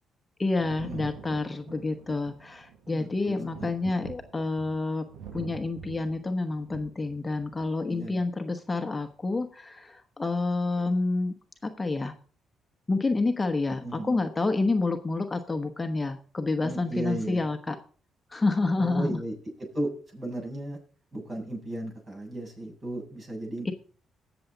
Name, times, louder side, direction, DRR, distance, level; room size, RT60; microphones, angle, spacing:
voice 1, 0.4-5.0 5.3-11.3 11.6-12.1 12.9-17.8 18.3-19.2 23.6-23.7, left 3 dB, 20° left, 6 dB, 1.0 m, -28 dB
Thunder, 0.6-7.9 9.0-9.1, right 7 dB, 85° right, 1.5 m, -45 dB
voice 2, 2.9-3.7 7.9-8.2 13.7-14.2 16.6-17.4 18.8-20.8 21.1-23.7, right 1 dB, 40° right, 0 dB, 7.8 m, -35 dB
19.0 x 7.1 x 3.9 m, 0.40 s
cardioid pair, 90°, 0 cm